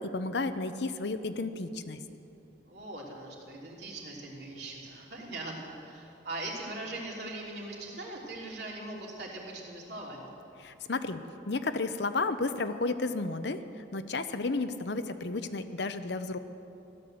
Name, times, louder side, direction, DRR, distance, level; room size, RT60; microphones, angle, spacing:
voice 1, 0.0-2.0 10.6-11.2 11.5-16.4, left 3 dB, 65° left, 10 dB, 0.8 m, -32 dB
voice 2, 2.6-10.4, right 2 dB, 60° right, -3 dB, 3.2 m, -41 dB
15.0 x 12.0 x 7.8 m, 2.8 s
head